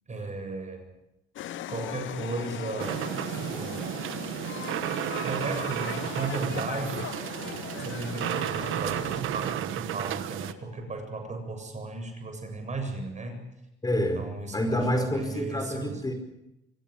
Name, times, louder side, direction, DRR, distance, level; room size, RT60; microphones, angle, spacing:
voice 1, 0.1-0.9 1.7-3.0 3.3-4.0 5.2-7.1 7.8-13.4 14.1-16.0, right 2 dB, 35° right, 5 dB, 7.7 m, -35 dB
sound 1, 1.4-9.2, left 12 dB, 75° left, 0.9 m, -39 dB
sound 2, 2.8-10.5, right 12 dB, 85° right, 1.2 m, -33 dB
voice 2, 13.8-14.2 14.5-16.1, left 1 dB, 20° left, 6 dB, 4.8 m, -27 dB
25.5 x 17.5 x 8.6 m, 0.88 s
cardioid pair, 90°, 20 cm